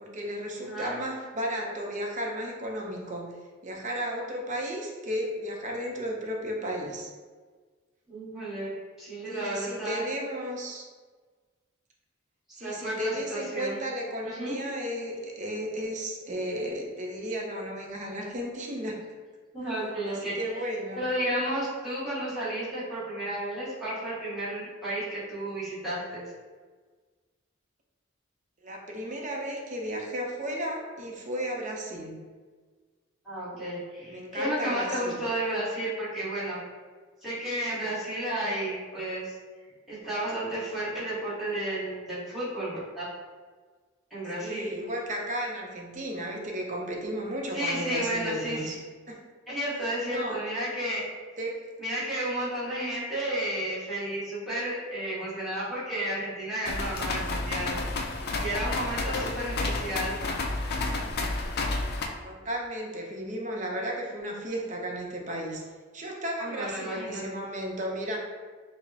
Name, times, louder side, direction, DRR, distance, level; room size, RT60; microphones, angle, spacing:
voice 1, 0.0-3.3 3.6-7.1 9.3-10.9 12.5-19.0 20.0-21.1 28.6-32.2 34.1-35.2 44.3-48.8 49.1-49.2 50.1-50.4 51.4-51.7 58.9-59.2 62.2-65.6 65.9-68.2, equal, 40° right, 0 dB, 0.6 m, -34 dB
voice 2, 0.6-1.0 8.1-8.7 9.0-10.0 12.6-13.8 14.2-14.6 19.5-20.4 20.9-26.2 33.2-36.6 37.2-39.3 39.9-43.0 44.1-44.7 47.5-48.7 49.5-51.0 51.8-57.8 58.4-60.2 66.4-67.3, right 1 dB, ahead, -11 dB, 1.4 m, -32 dB
sound 1, 56.6-62.1, left 2 dB, 50° left, 0.4 m, -31 dB
5.0 x 2.0 x 2.7 m, 1.5 s
head